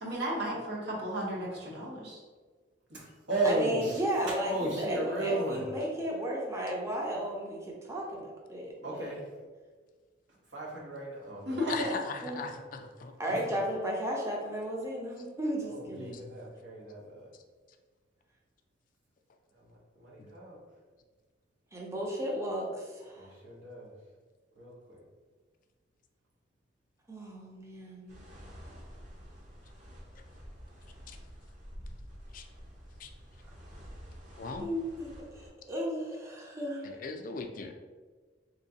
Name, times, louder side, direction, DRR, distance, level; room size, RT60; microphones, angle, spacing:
voice 1, 0.0-2.2 11.5-11.9, equal, 65° right, -4 dB, 1.0 m, -34 dB
voice 2, 2.9-5.6 8.1-8.2 8.8-9.3 10.5-11.7 13.3-13.6 15.6-17.3 19.5-20.6 23.1-23.9 24.6-25.0, right 2 dB, 90° right, -4 dB, 1.1 m, -35 dB
voice 3, 3.4-9.1 12.2-12.5 13.2-16.1 21.7-23.3 27.1-28.2 34.5-37.0, right 1 dB, 15° right, -2 dB, 0.5 m, -34 dB
voice 4, 11.7-13.1 16.0-16.3 20.2-20.3 30.2-30.3 31.1-31.2 32.3-32.5 33.0-33.1 34.4-34.7 36.8-37.7, left 4 dB, 50° left, 5 dB, 0.3 m, -39 dB
sound 1, 28.1-35.5, equal, 45° right, 0.8 m, -49 dB
3.5 x 3.0 x 2.7 m, 1.4 s
head